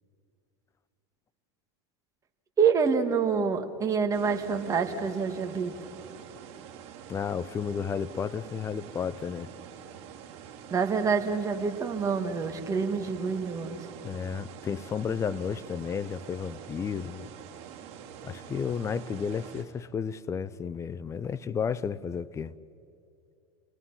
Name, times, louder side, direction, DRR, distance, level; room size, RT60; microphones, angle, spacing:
voice 1, 2.6-5.7 10.7-13.8, right 5 dB, 25° right, 1.9 m, -27 dB
sound 1, 4.1-19.6, right 8 dB, 50° right, 3.1 m, -46 dB
voice 2, 7.1-9.5 14.0-17.3 18.2-22.5, left 7 dB, 20° left, 0.6 m, -32 dB
29.5 x 18.5 x 5.7 m
supercardioid pair, 125°, 14 cm